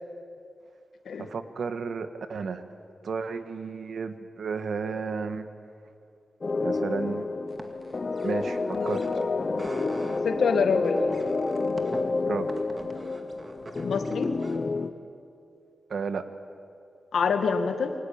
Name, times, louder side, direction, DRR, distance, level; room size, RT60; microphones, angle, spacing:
voice 1, 1.2-2.6 3.0-5.5 6.6-7.3 8.2-9.2 12.2-12.6 15.9-16.3, right 5 dB, 70° right, 9 dB, 1.6 m, -33 dB
sound 1, 6.4-14.9, left 3 dB, 40° left, 1.0 m, -29 dB
sound 2, 7.5-9.3 9.5-10.2 10.8-14.6, right 2 dB, 30° right, 2.2 m, -43 dB
voice 2, 10.2-11.0 13.8-14.3 17.1-18.0, left 5 dB, 90° left, 7 dB, 2.0 m, -26 dB
28.0 x 23.5 x 8.8 m, 2.5 s
wide cardioid pair, 135°, 0 cm